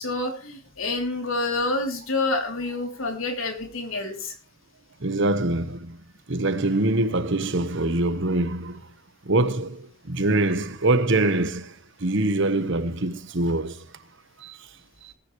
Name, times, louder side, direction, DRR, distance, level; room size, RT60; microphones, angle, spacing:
voice 1, 0.0-4.3, left 2 dB, 75° left, 3.1 m, -28 dB
voice 2, 5.0-6.0 6.3-8.8 9.3-11.7 12.0-13.8 14.4-14.6, right 2 dB, 60° right, 1.2 m, -24 dB
19.5 x 9.9 x 3.1 m
head